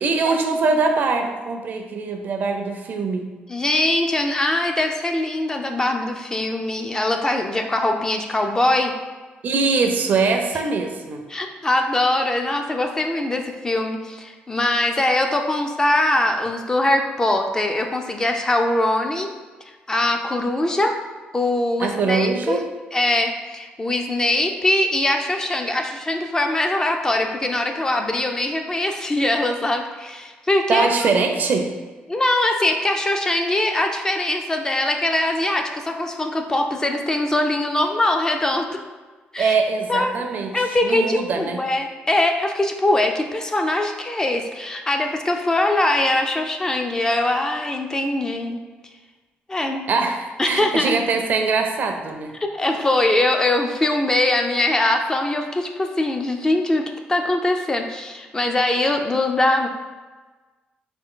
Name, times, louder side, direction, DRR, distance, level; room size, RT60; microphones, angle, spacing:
voice 1, 0.0-3.3 9.4-11.2 21.8-22.6 30.7-31.7 39.4-40.5 40.8-41.6 49.9-52.4, right 4 dB, 55° right, 4 dB, 0.4 m, -22 dB
voice 2, 3.5-8.9 11.3-19.3 19.9-21.0 21.3-22.6 22.9-31.1 32.1-38.8 39.3-39.6 39.9-40.1 40.5-48.6 49.5-49.8 50.4-51.0 52.4-56.8 57.1-59.7, left 1 dB, 20° left, 4 dB, 0.3 m, -22 dB
3.4 x 2.5 x 3.7 m, 1.3 s
cardioid pair, 110°, 4 cm